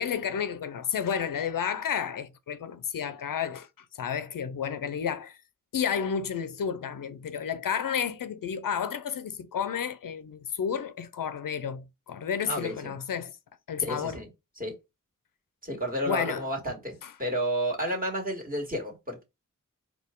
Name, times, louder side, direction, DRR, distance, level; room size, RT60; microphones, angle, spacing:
voice 1, 0.0-3.7 4.0-5.4 5.7-13.3 13.7-14.2 16.1-16.4 17.0-17.1, left 7 dB, 85° left, 0.5 m, -31 dB
voice 2, 12.5-12.9 13.8-14.3 14.6-14.7 15.6-16.9 17.2-19.2, equal, 25° right, 1.7 m, -31 dB
4.3 x 2.3 x 3.6 m
cardioid pair, 40°, 32 cm